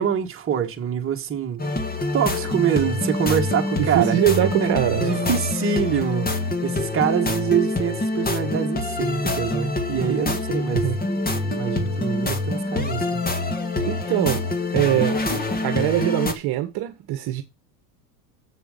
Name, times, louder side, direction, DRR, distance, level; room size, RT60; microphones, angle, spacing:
voice 1, 0.0-1.6 2.1-4.7 5.0-10.8 11.2-13.2, right 8 dB, 25° right, 1.9 m, -25 dB
sound 1, 1.6-16.3, left 2 dB, 20° left, 1.9 m, -25 dB
voice 2, 3.8-5.3 10.7-11.0 13.9-14.4 14.7-15.2 15.6-17.4, right 14 dB, 50° right, 1.4 m, -22 dB
7.7 x 6.9 x 6.8 m
supercardioid pair, 105°, 49 cm